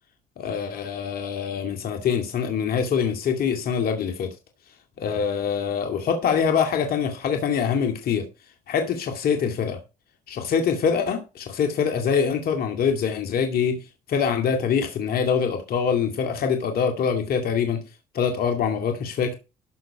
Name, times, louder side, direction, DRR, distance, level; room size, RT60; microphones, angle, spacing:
voice 1, 0.4-4.3 5.0-8.2 8.7-9.8 10.3-13.8 14.1-17.8 18.1-19.3, left 7 dB, 60° left, 2.3 m, -24 dB
13.0 x 6.1 x 5.0 m
supercardioid pair, 65°, 17 cm